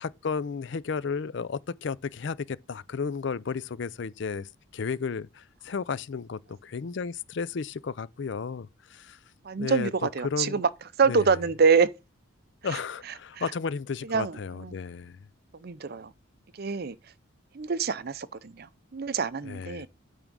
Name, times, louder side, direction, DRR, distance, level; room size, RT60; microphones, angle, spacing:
voice 1, 0.0-9.2 9.6-10.6 11.1-11.3 12.6-15.3 19.4-19.9, left 5 dB, 55° left, 0.4 m, -33 dB
voice 2, 9.4-10.7 11.0-11.9 14.1-14.8 15.6-16.1 16.6-17.0 17.5-18.7 18.9-19.9, right 5 dB, 50° right, 0.5 m, -25 dB
8.9 x 3.6 x 6.1 m
head